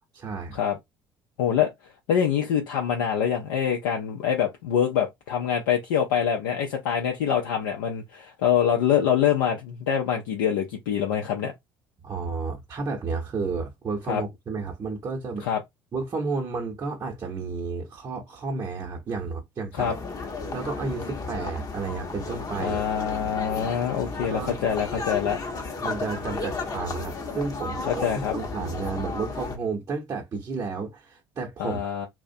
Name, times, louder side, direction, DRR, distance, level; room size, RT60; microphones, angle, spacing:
voice 1, 0.2-0.6 12.0-15.5 15.9-19.9 20.5-22.8 23.6-23.9 24.3-24.6 24.9-25.0 25.8-31.8, right 4 dB, 35° right, 0.8 m, -32 dB
voice 2, 1.4-1.7 2.1-11.5 14.1-14.2 15.4-15.6 19.7-19.9 22.6-25.4 27.9-28.3 31.6-32.1, left 8 dB, 75° left, 0.4 m, -25 dB
sound 1, 19.8-29.6, left 3 dB, 35° left, 0.7 m, -34 dB
2.3 x 2.1 x 2.5 m
hypercardioid pair, 60°, 11 cm